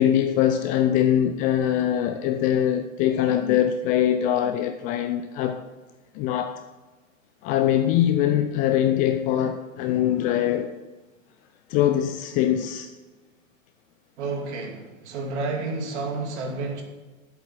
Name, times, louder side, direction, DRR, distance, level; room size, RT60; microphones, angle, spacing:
voice 1, 0.0-5.6 6.2-6.6 7.4-10.7 11.7-12.9, left 10 dB, 20° left, 0.4 m, -22 dB
voice 2, 14.2-16.8, right 3 dB, 55° right, 2.8 m, -30 dB
11.5 x 8.2 x 6.0 m
figure-of-eight pair, 105°, 41 cm